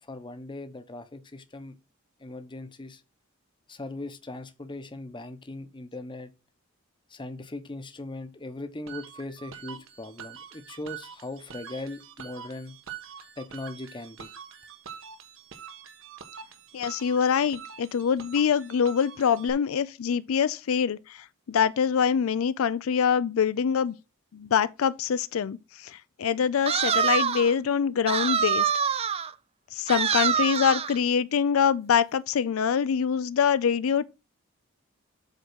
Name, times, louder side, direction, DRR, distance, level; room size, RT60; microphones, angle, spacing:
voice 1, 0.0-1.8 2.2-3.0 3.7-6.3 7.1-12.8 13.4-14.3, left 2 dB, 25° left, 0.8 m, -39 dB
sound 1, 8.9-19.5, right 8 dB, 70° right, 1.3 m, -45 dB
voice 2, 16.7-23.9 24.3-28.7 29.7-34.0, left 7 dB, 75° left, 0.4 m, -25 dB
sound 2, 26.7-27.5 28.1-29.3 29.9-31.0, right 7 dB, 30° right, 0.4 m, -25 dB
8.0 x 3.7 x 6.2 m
head